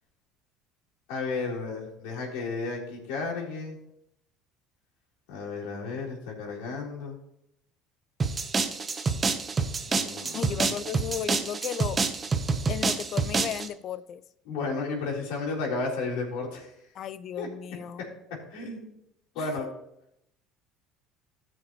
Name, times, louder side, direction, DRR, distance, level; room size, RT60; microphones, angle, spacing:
voice 1, 1.1-3.8 5.3-7.2 9.9-10.7 14.5-16.7 17.4-17.5 18.5-18.9 19.4-19.7, left 3 dB, 80° left, -4 dB, 3.8 m, -33 dB
sound 1, 8.2-13.7, right 4 dB, 30° right, 1.0 m, -27 dB
voice 2, 10.3-12.0 12.7-14.2 16.9-18.1 19.4-19.5, left 9 dB, 55° left, 16 dB, 0.4 m, -35 dB
14.5 x 6.1 x 3.1 m, 0.79 s
supercardioid pair, 85°, 0 cm